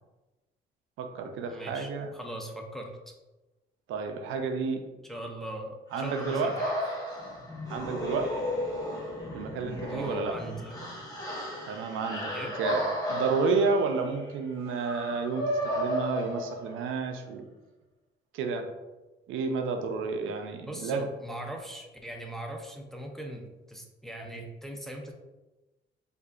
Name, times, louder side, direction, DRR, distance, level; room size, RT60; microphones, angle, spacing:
voice 1, 1.0-2.1 3.9-4.8 5.9-6.5 7.7-8.4 9.3-10.4 11.7-12.3 12.6-12.8 13.1-17.4 18.3-18.7 19.3-21.1, right 4 dB, 85° right, 5 dB, 0.5 m, -30 dB
voice 2, 1.5-3.0 5.0-6.7 9.9-10.8 12.3-12.5 20.6-25.1, right 1 dB, ahead, 1 dB, 0.6 m, -40 dB
sound 1, 5.9-17.0, equal, 20° left, 1.1 m, -34 dB
4.7 x 2.6 x 2.4 m, 1.1 s
cardioid pair, 90°, 20 cm